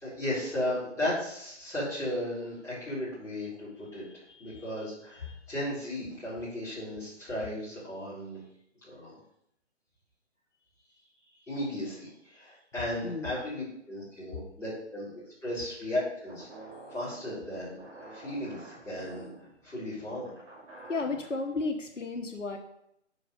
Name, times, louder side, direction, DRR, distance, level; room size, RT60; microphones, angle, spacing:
voice 1, 0.0-4.0 4.4-8.4 8.8-9.2 11.4-16.5 16.9-19.3 19.6-20.3, left 1 dB, 10° left, -10 dB, 3.6 m, -35 dB
voice 2, 4.3-4.6 5.2-5.4 13.0-13.3 20.9-22.6, left 3 dB, 80° left, 4 dB, 1.3 m, -34 dB
sound 1, 16.3-21.4, right 3 dB, 15° right, 2.5 m, -49 dB
10.5 x 4.2 x 5.3 m, 0.75 s
figure-of-eight pair, 140°, 36 cm